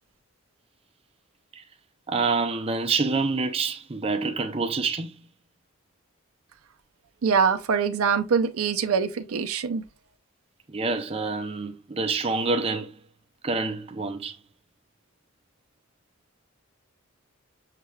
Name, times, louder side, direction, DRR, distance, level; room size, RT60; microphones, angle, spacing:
voice 1, 2.1-5.1 10.7-12.9 13.4-14.4, right 4 dB, 25° right, 0.5 m, -27 dB
voice 2, 7.2-9.8, right 6 dB, 85° right, 0.5 m, -24 dB
6.6 x 3.2 x 2.3 m
head